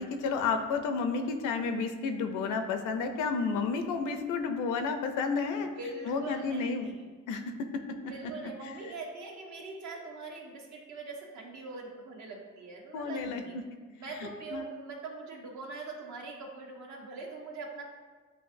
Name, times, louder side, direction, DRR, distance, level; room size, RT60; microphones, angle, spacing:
voice 1, 0.0-5.7 6.1-6.9 7.3-7.5 8.6-8.7 12.9-13.6 14.2-14.7, left 4 dB, 90° left, 7 dB, 0.5 m, -31 dB
voice 2, 5.8-7.1 8.0-13.6 13.9-17.8, right 3 dB, 65° right, 0 dB, 1.0 m, -42 dB
7.7 x 2.6 x 2.6 m, 1.4 s
cardioid pair, 90°, 30 cm